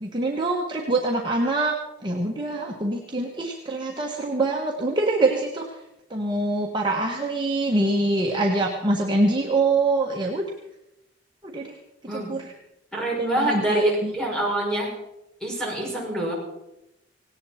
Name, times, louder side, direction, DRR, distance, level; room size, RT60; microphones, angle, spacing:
voice 1, 0.0-1.8 2.0-5.7 6.1-10.4 11.4-11.7 12.1-12.4 13.2-14.1, right 2 dB, 25° right, -1 dB, 1.5 m, -24 dB
voice 2, 12.9-14.9 15.4-16.3, right 1 dB, 5° left, -3 dB, 6.1 m, -25 dB
18.0 x 18.0 x 4.4 m, 0.87 s
head